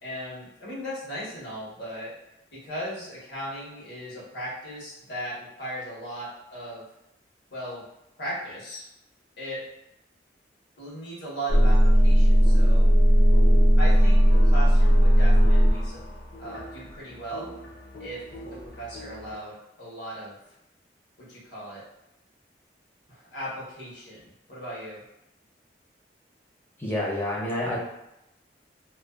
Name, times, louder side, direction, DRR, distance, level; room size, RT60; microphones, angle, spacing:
voice 1, 0.0-2.1 2.5-6.8 7.5-7.8 8.2-8.9 9.4-9.6 10.8-12.9 13.8-16.0 16.4-17.5 18.0-18.2 18.6-19.5 19.8-20.4 21.2-21.8 23.1-25.0, right 1 dB, 85° left, -8 dB, 1.1 m, -37 dB
sound 1, 11.5-19.4, equal, 65° left, 0.6 m, -19 dB
voice 2, 26.8-27.8, left 1 dB, 10° left, -6 dB, 0.6 m, -28 dB
2.5 x 2.2 x 2.3 m, 0.87 s
head